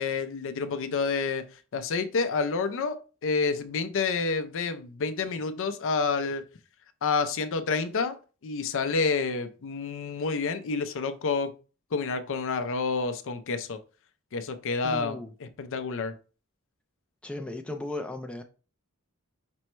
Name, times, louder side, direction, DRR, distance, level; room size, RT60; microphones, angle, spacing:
voice 1, 0.0-1.5 1.7-6.4 7.0-8.2 8.4-11.5 11.9-13.8 14.3-16.1, left 4 dB, 60° left, 0.5 m, -29 dB
voice 2, 14.8-15.3 17.2-18.4, left 2 dB, 5° left, 0.4 m, -36 dB
5.2 x 2.1 x 4.4 m
head